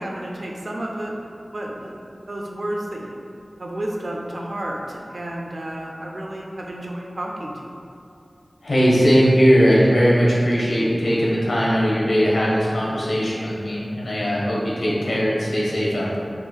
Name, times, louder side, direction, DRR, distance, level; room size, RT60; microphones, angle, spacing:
voice 1, 0.0-2.0 2.3-3.2 3.6-7.7, right 1 dB, 65° right, -1 dB, 0.4 m, -31 dB
voice 2, 8.6-16.2, equal, 80° left, -6 dB, 0.7 m, -19 dB
3.6 x 3.0 x 2.2 m, 2.5 s
wide cardioid pair, 50°, 0 cm